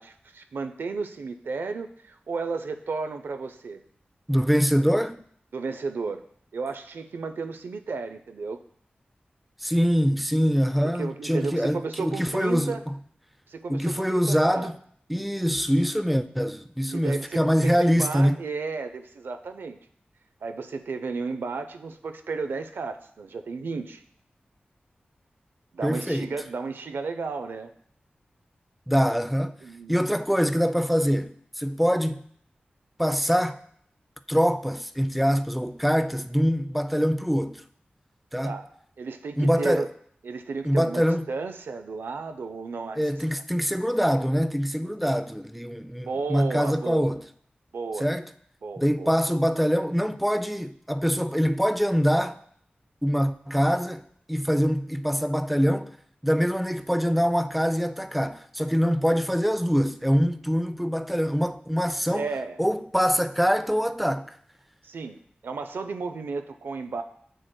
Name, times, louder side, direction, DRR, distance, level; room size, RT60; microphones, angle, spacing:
voice 1, 0.0-3.8 5.5-6.2 6.5-8.6 11.0-12.8 13.5-14.7 16.9-19.8 20.4-24.0 25.7-27.7 29.6-29.9 38.4-38.7 39.0-39.9 40.2-43.0 46.0-47.2 47.7-48.1 48.6-49.2 62.1-62.6 64.8-65.2 65.4-67.0, right 4 dB, 90° right, 0.4 m, -33 dB
voice 2, 4.3-5.2 9.6-12.9 13.7-14.7 15.1-18.4 25.8-26.4 28.9-29.6 29.9-32.2 33.0-33.6 34.3-37.6 38.3-38.6 39.4-39.8 40.6-41.2 43.0-47.2 48.0-48.3 48.8-52.4 53.0-54.0 54.3-55.9 56.2-62.3 62.6-64.4, equal, ahead, 0.4 m, -24 dB
7.9 x 6.2 x 2.2 m
cardioid pair, 45°, 4 cm